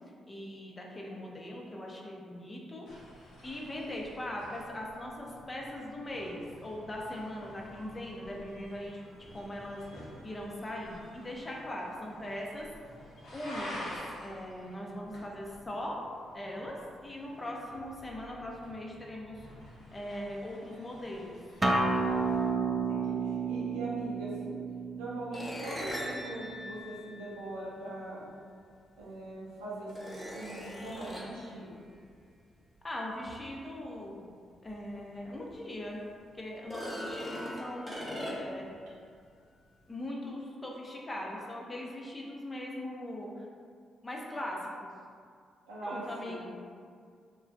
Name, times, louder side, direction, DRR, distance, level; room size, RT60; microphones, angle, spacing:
voice 1, 0.3-2.9 3.4-9.0 9.3-9.8 10.2-12.7 13.3-16.0 16.3-16.8 17.0-19.5 19.9-21.3 32.8-34.2 34.6-36.0 36.3-38.1 38.3-38.6 39.9-43.5 44.0-44.9 45.8-46.4, left 1 dB, 30° left, -2 dB, 0.6 m, -40 dB
sound 1, 2.9-22.5, left 1 dB, 75° left, 0.7 m, -50 dB
Acoustic guitar, 21.6-26.8, right 3 dB, 25° right, 0.3 m, -31 dB
voice 2, 22.4-24.6 24.9-28.2 29.0-31.7 45.7-46.4, right 1 dB, 90° right, -8 dB, 0.6 m, -41 dB
sound 2, 25.3-27.8 29.0-29.1 29.9-31.4 34.7-34.8 35.3-35.4 36.6-38.7, equal, ahead, 1.1 m, -40 dB
3.2 x 2.2 x 2.6 m, 2.2 s
hypercardioid pair, 45°, 0 cm